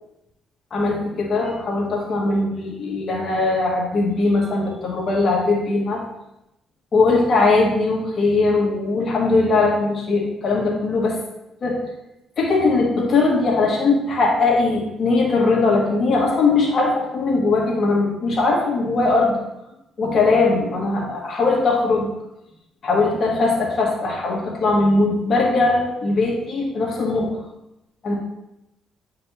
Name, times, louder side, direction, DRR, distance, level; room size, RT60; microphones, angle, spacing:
voice 1, 0.7-6.0 6.9-11.2 11.6-11.8 12.4-19.4 20.0-22.1 22.8-27.3 28.0-28.1, left 3 dB, 50° left, -2 dB, 2.0 m, -20 dB
8.6 x 5.2 x 2.9 m, 0.89 s
cardioid pair, 90°, 0 cm